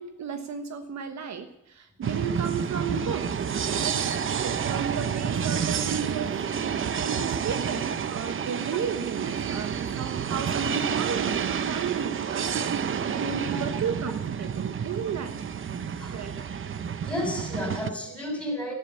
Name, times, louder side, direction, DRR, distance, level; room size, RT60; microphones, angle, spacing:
voice 1, 0.0-3.5 3.7-4.0 4.3-6.3 7.0-15.3 16.1-16.3, right 6 dB, 60° right, 7 dB, 1.3 m, -34 dB
sound 1, 2.0-17.9, right 7 dB, 40° right, 0.8 m, -29 dB
voice 2, 17.0-18.7, left 1 dB, 5° left, 2 dB, 6.2 m, -32 dB
12.5 x 11.5 x 8.4 m, 0.84 s
cardioid pair, 105°, 30 cm